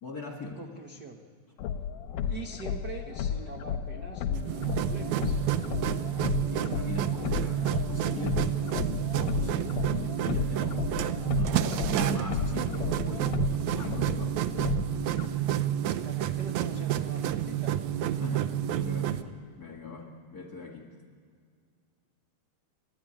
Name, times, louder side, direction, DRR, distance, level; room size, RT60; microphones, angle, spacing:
voice 1, 0.0-0.6 5.8-10.9 11.3-13.4 13.7-14.4 18.1-19.3 19.6-20.9, left 4 dB, 35° left, -1 dB, 1.9 m, -40 dB
voice 2, 0.6-1.2 2.1-5.5 15.8-17.7, right 4 dB, 55° right, 3 dB, 1.1 m, -43 dB
sound 1, 1.6-15.3, left 8 dB, 85° left, 2.4 m, -34 dB
sound 2, 4.3-19.2, right 11 dB, 75° right, 2.0 m, -29 dB
29.5 x 12.5 x 10.0 m, 2.1 s
omnidirectional pair, 3.7 m